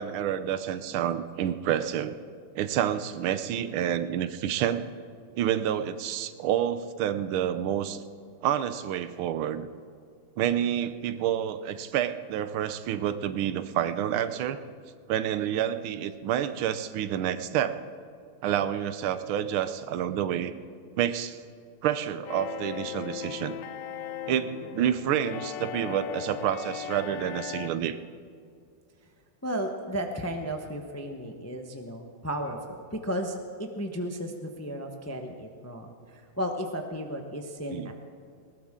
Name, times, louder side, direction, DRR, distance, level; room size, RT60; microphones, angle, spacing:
voice 1, 0.0-2.2 2.5-4.9 5.4-8.0 8.4-9.7 10.4-14.6 15.1-17.8 18.4-20.5 21.0-21.4 21.8-23.6 24.3-28.0 37.7-37.9, right 10 dB, 85° right, 12 dB, 1.6 m, -28 dB
sound 1, 22.3-27.7, left 10 dB, 70° left, 1.2 m, -38 dB
voice 2, 29.4-37.9, equal, 15° left, 3 dB, 0.4 m, -34 dB
20.0 x 18.5 x 3.7 m, 2.3 s
omnidirectional pair, 2.2 m